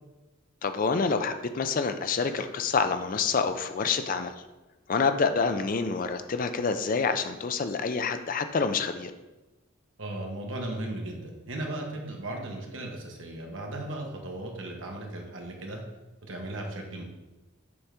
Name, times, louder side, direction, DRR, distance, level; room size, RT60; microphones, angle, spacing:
voice 1, 0.6-4.3 4.9-9.1, left 5 dB, 40° left, 9 dB, 0.4 m, -27 dB
voice 2, 10.0-15.8 16.2-17.0, right 1 dB, 65° right, 1 dB, 1.2 m, -36 dB
7.0 x 5.1 x 3.4 m, 1.1 s
head